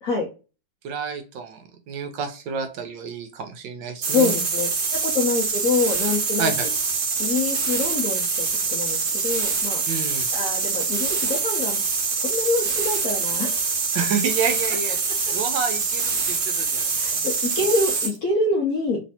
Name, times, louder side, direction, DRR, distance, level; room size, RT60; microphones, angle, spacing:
voice 1, 0.8-4.4 6.4-6.7 9.9-10.3 13.9-15.0 15.3-16.9, right 5 dB, 75° right, 6 dB, 1.3 m, -29 dB
sound 1, 4.0-18.2, right 5 dB, 55° right, 1.3 m, -25 dB
voice 2, 4.1-4.7 5.0-6.5 7.2-9.8 10.3-11.8 12.2-13.6 16.9-19.0, left 3 dB, 55° left, 0 dB, 1.0 m, -25 dB
3.3 x 3.2 x 2.7 m, 0.32 s
omnidirectional pair, 2.2 m